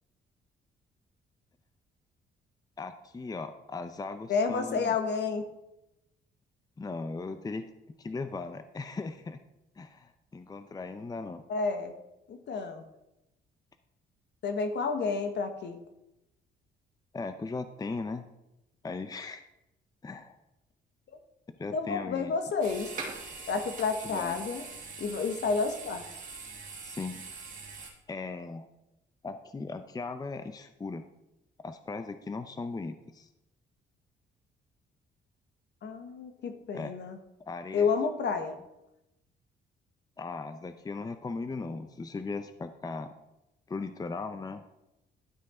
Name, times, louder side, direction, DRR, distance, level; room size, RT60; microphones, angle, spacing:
voice 1, 2.8-4.9 6.8-7.7 8.0-9.4 9.8-11.4 17.1-18.3 18.8-19.4 20.0-20.4 21.6-22.3 24.0-24.4 26.8-27.2 28.1-28.7 29.2-31.1 31.6-33.3 36.7-36.9 37.5-37.9 40.2-43.2 43.7-44.6, left 3 dB, 20° left, 10 dB, 0.6 m, -38 dB
voice 2, 4.3-5.4 11.5-11.9 12.3-12.8 14.4-15.8 21.7-22.9 23.5-24.6 25.0-26.0 35.8-37.2 37.7-38.6, left 5 dB, 60° left, 7 dB, 1.2 m, -30 dB
sound 1, 22.6-27.9, right 4 dB, 40° right, 2.3 m, -42 dB
11.0 x 6.0 x 4.3 m, 0.90 s
cardioid pair, 90°, 20 cm